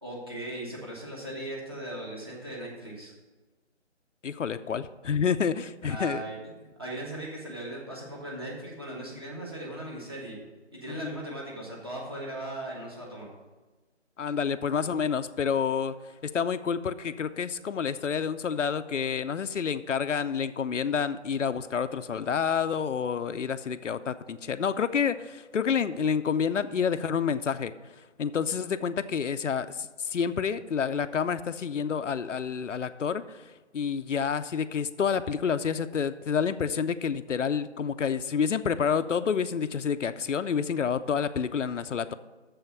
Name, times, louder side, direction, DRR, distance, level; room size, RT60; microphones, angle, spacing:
voice 1, 0.0-3.1 5.9-10.4 10.7-13.3, right 1 dB, 20° right, -4 dB, 1.3 m, -38 dB
voice 2, 4.2-6.2 10.9-11.1 14.2-42.1, left 7 dB, 85° left, 11 dB, 0.6 m, -29 dB
7.0 x 5.7 x 6.9 m, 1.2 s
figure-of-eight pair, 175°, 36 cm